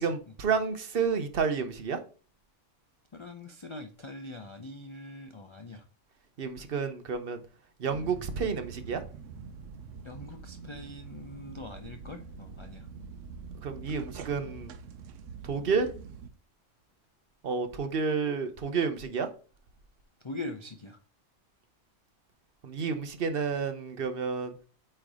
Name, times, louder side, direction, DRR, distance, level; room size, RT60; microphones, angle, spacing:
voice 1, 0.0-2.0 6.4-7.4 7.8-9.0 13.6-14.7 15.4-15.9 17.4-19.3 22.6-24.5, right 5 dB, 55° right, 1.0 m, -30 dB
voice 2, 3.1-5.9 10.0-12.9 20.2-21.0, left 2 dB, 35° left, 0.5 m, -42 dB
sound 1, 7.9-16.3, right 5 dB, 85° right, 1.0 m, -45 dB
8.7 x 3.4 x 3.6 m
omnidirectional pair, 1.3 m